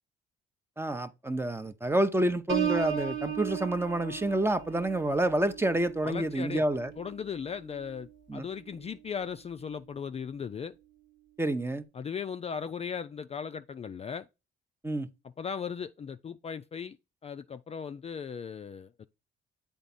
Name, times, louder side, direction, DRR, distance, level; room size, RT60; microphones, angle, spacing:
voice 1, 0.8-6.9 8.3-8.4 11.4-11.8 14.8-15.1, right 1 dB, 10° right, 0.6 m, -28 dB
Piano, 2.5-8.1 8.6-8.9, right 7 dB, 65° right, 1.4 m, -36 dB
voice 2, 6.0-6.6 7.0-10.7 11.9-14.2 15.4-17.0 17.2-19.1, left 6 dB, 30° left, 0.4 m, -37 dB
8.1 x 3.5 x 4.1 m
cardioid pair, 90°, 20 cm